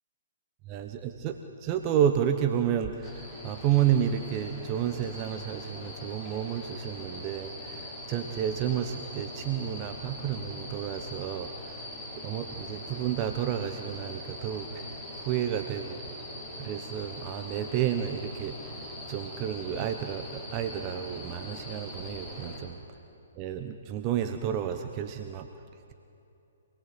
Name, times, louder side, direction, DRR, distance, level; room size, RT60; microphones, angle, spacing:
voice 1, 0.7-11.8 12.2-16.1 16.6-18.5 19.1-22.8 23.4-25.5, right 9 dB, 30° right, 7 dB, 1.1 m, -31 dB
sound 1, 3.0-22.6, left 1 dB, 20° left, 6.3 m, -42 dB
27.0 x 20.0 x 8.1 m, 2.8 s
figure-of-eight pair, 125°, 0 cm